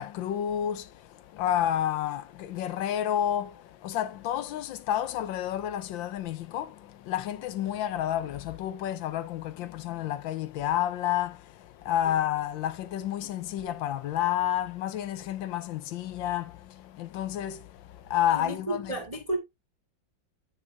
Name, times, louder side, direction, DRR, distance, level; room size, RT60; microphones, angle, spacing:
voice 1, 0.0-18.9, left 11 dB, 80° left, 1.4 m, -30 dB
voice 2, 18.3-19.4, right 2 dB, 30° right, 0.7 m, -33 dB
8.1 x 6.6 x 2.5 m
omnidirectional pair, 2.1 m